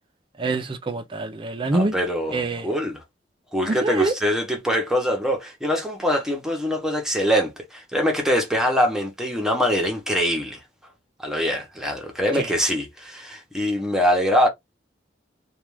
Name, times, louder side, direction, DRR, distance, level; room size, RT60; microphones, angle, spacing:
voice 1, 0.4-1.9 2.3-2.7 3.7-4.1 12.3-12.5, right 2 dB, 30° right, 0.4 m, -25 dB
voice 2, 1.7-3.0 3.5-10.6 11.2-14.5, equal, 5° right, 0.8 m, -23 dB
2.4 x 2.3 x 3.1 m
head